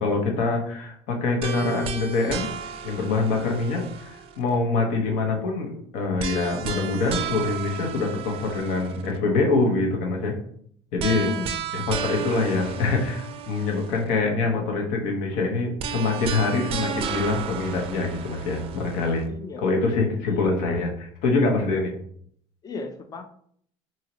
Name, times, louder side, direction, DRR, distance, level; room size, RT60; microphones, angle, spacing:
voice 1, 0.0-2.5 2.8-10.3 10.9-11.3 11.7-19.3 19.6-21.9, left 3 dB, 80° left, 2 dB, 0.9 m, -25 dB
sound 1, 1.4-4.5 6.2-9.2 11.0-14.2 15.8-19.2, right 8 dB, 50° right, 0.4 m, -33 dB
voice 2, 11.1-11.5 19.3-19.6 20.3-20.6 22.6-23.3, left 4 dB, 30° left, 6 dB, 0.5 m, -35 dB
2.8 x 2.7 x 2.9 m, 0.64 s
supercardioid pair, 105°, 12 cm